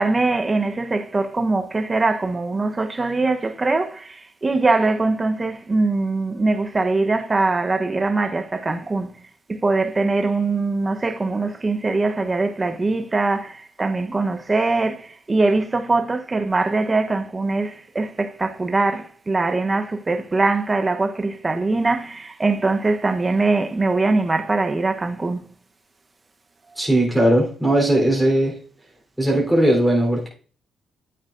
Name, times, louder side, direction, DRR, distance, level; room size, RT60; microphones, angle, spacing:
voice 1, 0.0-9.2 9.5-25.5, right 3 dB, 25° right, 0.9 m, -22 dB
voice 2, 26.8-28.6 29.2-30.3, right 1 dB, ahead, 3.6 m, -18 dB
10.5 x 8.3 x 2.6 m
cardioid pair, 90°, 0 cm